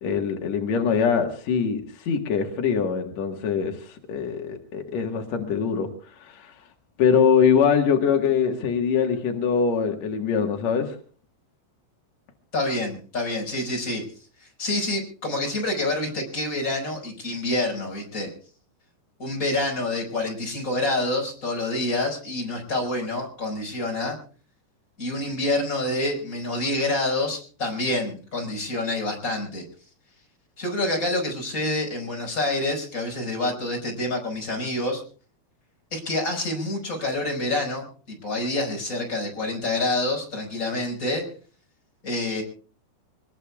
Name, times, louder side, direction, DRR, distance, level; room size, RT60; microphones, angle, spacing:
voice 1, 0.0-5.9 6.2-6.5 7.0-11.0, left 6 dB, 65° left, 3 dB, 1.7 m, -23 dB
voice 2, 12.5-14.0 14.4-18.3 19.2-24.2 25.0-29.6 30.6-35.0 35.9-41.3 42.0-42.4, left 2 dB, 15° left, 1 dB, 5.0 m, -27 dB
25.5 x 20.5 x 2.4 m, 0.40 s
omnidirectional pair, 5.4 m